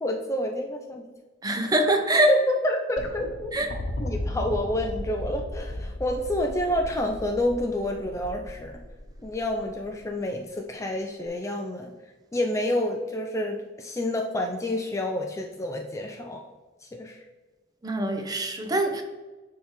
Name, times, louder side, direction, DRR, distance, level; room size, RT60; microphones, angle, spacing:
voice 1, 0.0-1.1 2.3-3.5 4.0-8.7 9.2-11.9 12.3-16.4 16.8-17.2, left 1 dB, 15° left, 3 dB, 0.4 m, -28 dB
voice 2, 1.4-2.3 3.5-3.7 17.8-19.0, right 1 dB, 20° right, 5 dB, 0.7 m, -23 dB
sound 1, 3.0-10.1 11.3-11.4, left 1 dB, 90° left, 1.1 m, -36 dB
10.5 x 3.6 x 3.1 m, 1.2 s
head